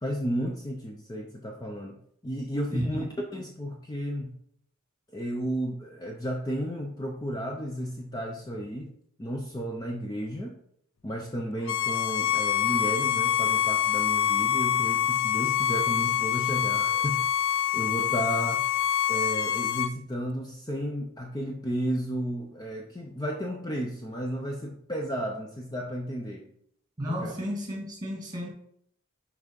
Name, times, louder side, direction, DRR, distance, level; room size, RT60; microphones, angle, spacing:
voice 1, 0.0-3.0 3.3-4.4 5.1-8.9 9.2-10.5 11.0-17.3 17.7-18.6 19.1-26.5 27.2-27.3, equal, 20° left, 1 dB, 0.6 m, -33 dB
voice 2, 2.7-3.0 27.0-28.5, equal, 20° right, 0 dB, 2.1 m, -32 dB
Bowed string instrument, 11.7-19.9, left 10 dB, 70° left, 0.4 m, -26 dB
6.1 x 4.7 x 5.2 m, 0.68 s
head